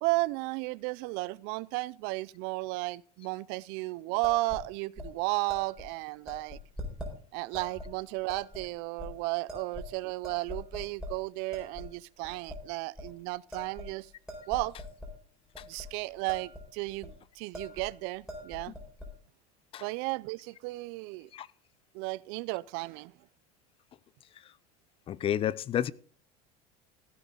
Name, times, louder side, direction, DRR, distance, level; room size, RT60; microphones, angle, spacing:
voice 1, 0.0-6.6 7.3-14.1 14.5-14.8 15.6-18.7 19.8-21.3 21.9-23.1, right 22 dB, 65° right, 0.5 m, -34 dB
sound 1, 4.2-4.6 5.0-5.1 5.5-5.9 6.3-7.1 7.5-7.9 8.3-8.6 9.0-9.1 9.5-10.0 10.2-11.1 11.5-11.9 12.2-12.6 13.0-13.1 13.5-15.1 15.5-15.9 16.1-16.6 16.9-17.1 17.5-17.9 18.2-19.1, left 1 dB, 5° right, 4.0 m, -42 dB
voice 2, 25.1-25.9, left 10 dB, 30° left, 0.5 m, -30 dB
15.5 x 9.2 x 3.8 m
supercardioid pair, 130°, 18 cm